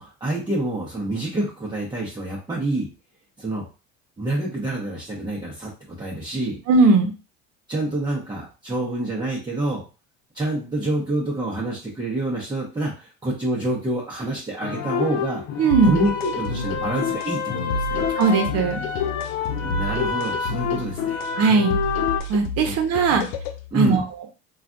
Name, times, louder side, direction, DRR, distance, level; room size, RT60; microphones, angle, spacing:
voice 1, 0.0-2.9 3.4-3.7 4.2-5.7 6.0-6.6 7.7-9.8 10.3-15.4 15.8-18.0 19.6-21.2 22.6-22.7 23.1-23.2 23.7-24.0, right 2 dB, 15° right, -4 dB, 0.9 m, -27 dB
voice 2, 6.7-7.1 15.6-16.0 18.2-18.8 21.4-21.8 22.3-23.2 23.7-24.0, right 4 dB, 55° right, 4 dB, 0.9 m, -18 dB
sound 1, 14.6-22.2, left 7 dB, 60° left, 0.8 m, -27 dB
sound 2, 15.7-23.7, left 1 dB, 85° left, 0.5 m, -31 dB
3.2 x 2.4 x 2.5 m, 0.32 s
supercardioid pair, 95°, 30 cm